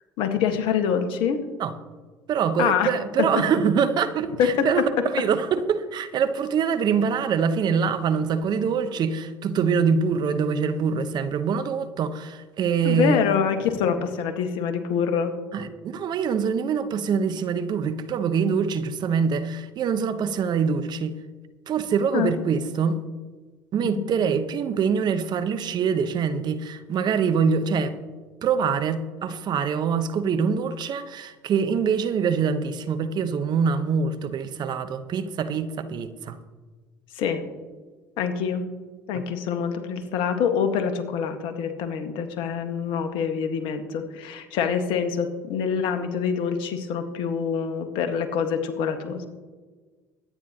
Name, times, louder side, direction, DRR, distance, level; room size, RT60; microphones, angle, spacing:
voice 1, 0.2-1.4 2.6-2.9 3.2-3.3 4.4-4.7 12.8-15.3 22.1-22.3 23.8-24.1 37.1-37.4 38.2-38.7 39.1-49.3, left 7 dB, 65° left, 1.6 m, -25 dB
voice 2, 2.3-13.2 15.5-21.1 21.7-23.0 23.7-28.0 28.4-36.4 39.1-39.2, right 6 dB, 50° right, 1.1 m, -24 dB
23.0 x 9.7 x 3.0 m
hypercardioid pair, 60°, 9 cm